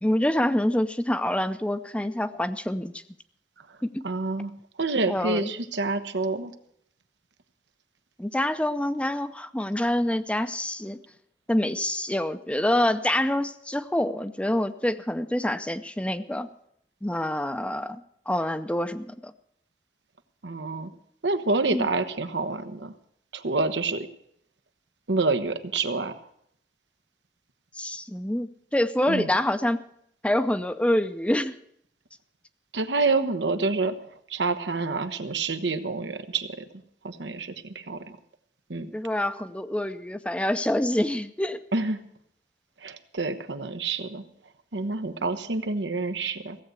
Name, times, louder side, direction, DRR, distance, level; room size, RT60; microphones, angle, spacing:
voice 1, 0.0-2.9 3.8-4.0 5.1-5.5 8.2-11.0 11.5-16.5 17.0-18.0 18.3-19.3 21.7-21.9 27.8-29.9 30.2-31.5 38.9-41.6, left 1 dB, 5° left, 11 dB, 0.5 m, -26 dB
voice 2, 4.0-4.5 4.8-6.5 20.4-20.9 21.2-22.9 23.3-24.1 25.1-26.1 29.1-29.3 32.7-33.9 34.3-36.6 37.0-38.0 38.7-38.9 41.7-42.0 42.8-44.2 44.7-46.6, right 3 dB, 90° right, 9 dB, 1.1 m, -27 dB
16.0 x 7.8 x 8.2 m, 0.70 s
head